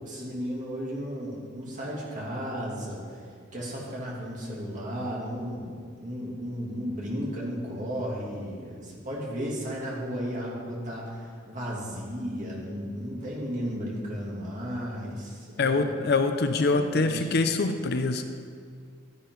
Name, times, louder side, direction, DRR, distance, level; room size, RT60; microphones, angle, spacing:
voice 1, 0.0-3.2 3.5-16.0 16.6-17.3, equal, 35° right, -5 dB, 2.7 m, -34 dB
voice 2, 15.6-18.2, left 3 dB, 50° left, 7 dB, 0.6 m, -24 dB
12.5 x 10.0 x 3.9 m, 2.1 s
head